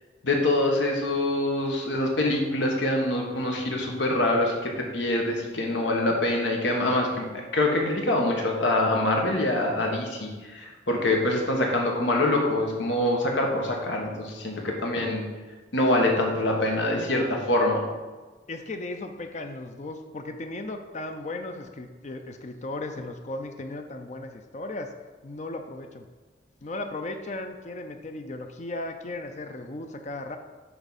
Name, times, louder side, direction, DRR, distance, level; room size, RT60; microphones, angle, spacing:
voice 1, 0.2-15.3 15.7-17.8, left 1 dB, 90° left, 0 dB, 1.4 m, -25 dB
voice 2, 18.5-24.9 25.2-26.0 26.6-30.4, left 2 dB, 40° left, 6 dB, 0.5 m, -36 dB
10.5 x 3.6 x 4.1 m, 1.3 s
head